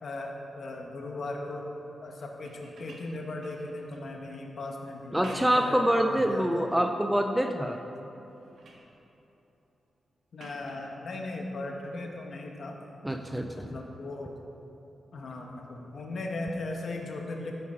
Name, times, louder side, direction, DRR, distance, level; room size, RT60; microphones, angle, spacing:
voice 1, 0.0-1.7 2.0-6.7 10.3-12.8 13.5-14.4 15.1-17.5, left 2 dB, 50° left, 1 dB, 1.2 m, -38 dB
sound 1, 2.3-4.1 5.0-5.8 6.3-6.9 7.4-7.9 8.2-8.9 10.4-10.9 12.7-12.8, right 2 dB, 65° right, 1.6 m, -51 dB
voice 2, 5.1-7.8 13.0-13.8, equal, 5° right, 5 dB, 0.4 m, -26 dB
13.5 x 6.9 x 4.9 m, 2.9 s
wide cardioid pair, 165°, 0 cm